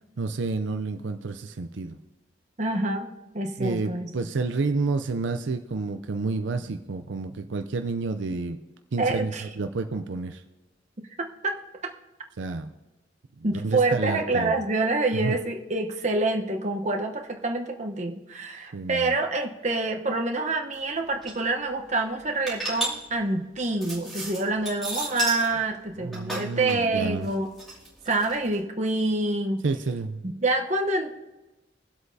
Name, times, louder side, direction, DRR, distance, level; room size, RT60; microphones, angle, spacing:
voice 1, 0.2-2.0 3.6-8.6 8.9-10.4 12.4-12.7 13.4-14.5 15.2-15.4 18.7-19.1 26.0-27.3 29.6-30.2, right 3 dB, 75° right, 7 dB, 0.5 m, -30 dB
voice 2, 2.6-3.1 3.3-4.1 9.0-9.4 11.2-11.6 13.4-27.5 28.0-29.6 30.2-31.1, right 2 dB, 40° right, 2 dB, 1.0 m, -27 dB
sound 1, 20.7-20.8 21.0-21.4 21.9-25.5 25.8-28.5, right 2 dB, ahead, 2.7 m, -33 dB
23.5 x 7.9 x 2.7 m, 1.1 s
head